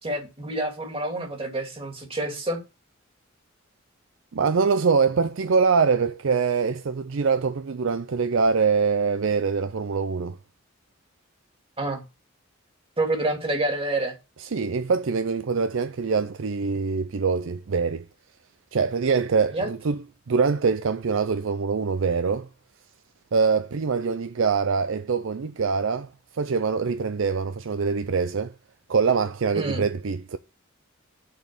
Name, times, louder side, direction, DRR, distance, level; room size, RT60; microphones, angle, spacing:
voice 1, 0.0-2.6 11.8-12.1 13.0-14.2 19.5-19.7 29.5-29.8, right 2 dB, 25° right, 2.3 m, -28 dB
voice 2, 4.3-10.4 14.5-18.0 18.7-20.0 20.3-22.5 23.3-26.1 26.4-28.5 28.9-30.4, right 5 dB, 65° right, 0.5 m, -24 dB
6.7 x 5.3 x 7.2 m
head